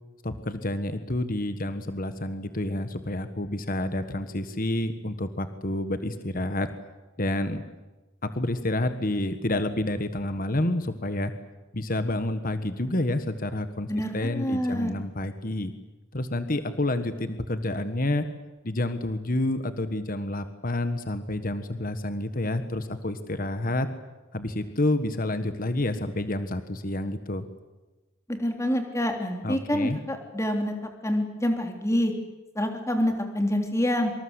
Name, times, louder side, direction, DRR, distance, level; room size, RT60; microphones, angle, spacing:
voice 1, 0.2-6.7 7.2-7.6 8.2-11.3 11.7-15.7 16.1-18.3 18.6-23.9 24.3-27.4 29.4-30.0, left 1 dB, 40° left, 10 dB, 1.4 m, -29 dB
voice 2, 13.9-14.9 28.3-30.7 31.0-32.1 32.5-34.1, equal, 15° left, 4 dB, 3.3 m, -27 dB
26.0 x 25.5 x 8.2 m, 1.1 s
head